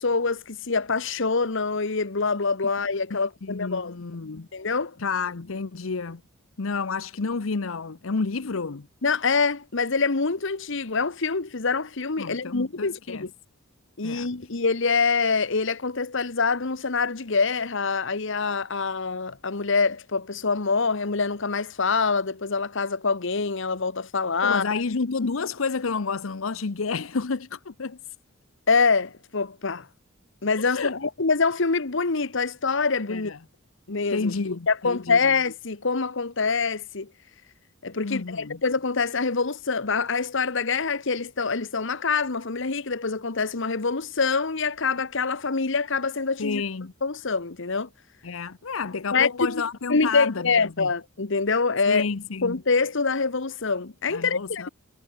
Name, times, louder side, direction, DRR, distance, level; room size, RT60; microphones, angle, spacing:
voice 1, 0.0-4.0 4.5-5.0 9.0-13.3 14.0-24.7 28.7-29.9 30.4-33.3 33.9-34.3 34.7-37.1 37.8-46.6 47.0-47.9 49.1-49.6 49.9-52.1 52.4-54.7, left 4 dB, 65° left, 1.2 m, -25 dB
voice 2, 3.1-4.5 5.0-6.2 6.6-8.9 12.2-13.2 14.0-14.3 24.4-28.0 30.6-30.9 33.1-33.4 34.1-35.2 38.0-38.6 46.4-46.9 48.2-50.5 50.8-50.9 51.9-52.6 54.1-54.7, left 4 dB, 80° left, 0.8 m, -30 dB
head